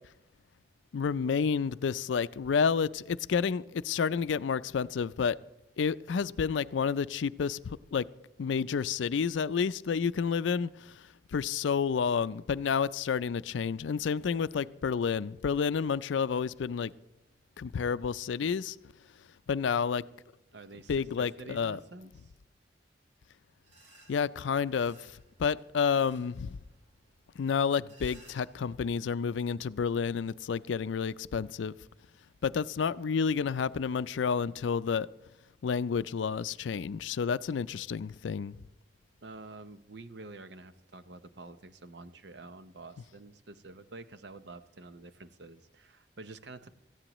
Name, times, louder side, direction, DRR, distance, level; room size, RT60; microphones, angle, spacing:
voice 1, 0.9-5.4 5.8-8.1 8.4-16.9 17.6-18.8 19.5-20.1 20.9-21.8 24.1-26.6 27.4-31.7 32.4-35.1 35.6-38.6, left 6 dB, 90° left, 0.4 m, -30 dB
voice 2, 20.5-22.3 39.2-46.7, right 3 dB, 70° right, 0.7 m, -48 dB
sound 1, 23.6-29.0, right 1 dB, 90° right, 3.7 m, -61 dB
17.5 x 14.5 x 3.0 m
head